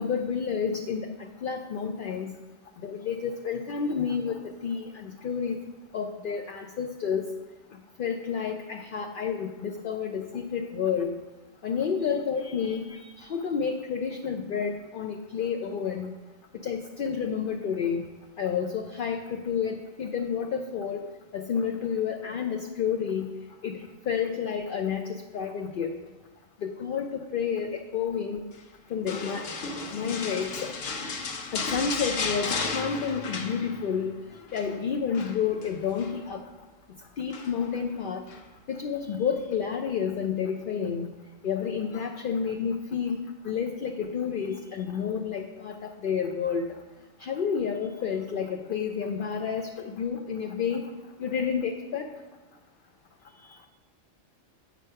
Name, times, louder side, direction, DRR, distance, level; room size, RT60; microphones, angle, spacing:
voice 1, 0.0-2.3 2.8-5.6 5.9-7.3 8.0-11.1 11.6-16.1 16.6-18.0 18.4-21.0 21.3-23.3 23.6-26.0 26.6-28.5 28.9-29.5 29.9-30.7 31.5-34.2 34.5-36.4 37.2-38.3 38.7-41.1 41.4-46.8 47.2-50.9 51.2-52.1, left 7 dB, 55° left, 4 dB, 0.6 m, -30 dB
sound 1, 29.1-34.1 34.3-34.7 35.1-36.2 37.3-37.8 38.3-38.4, left 4 dB, 75° left, 1.2 m, -34 dB
7.9 x 5.2 x 5.5 m, 1.2 s
omnidirectional pair, 1.3 m